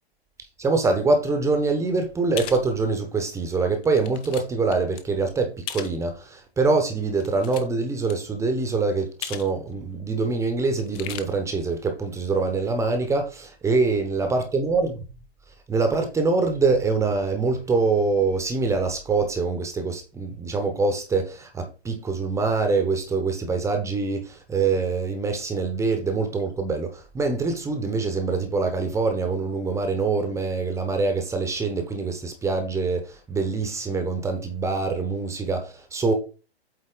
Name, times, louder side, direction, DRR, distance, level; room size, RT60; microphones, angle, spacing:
voice 1, 0.6-14.9 15.7-36.1, right 4 dB, 10° right, 1.0 m, -24 dB
sound 1, 2.4-2.6 3.2-3.3 3.8-4.4 4.7-5.0 5.7-6.0 7.1-8.1 9.2-9.5 9.8-9.9 10.8-11.2, left 11 dB, 15° left, 0.4 m, -36 dB
8.3 x 4.0 x 3.9 m
hypercardioid pair, 125°, 32 cm